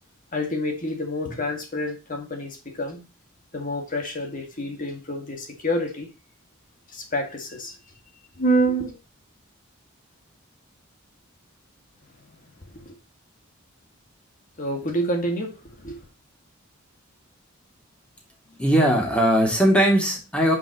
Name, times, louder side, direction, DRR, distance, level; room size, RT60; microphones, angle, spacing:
voice 1, 0.3-3.0 3.5-6.1 6.9-7.8 8.4-9.0 12.7-12.9 14.6-16.0, right 1 dB, 40° left, 2.1 m, -27 dB
voice 2, 18.5-20.6, equal, 5° left, 2.7 m, -19 dB
9.9 x 6.1 x 3.0 m
head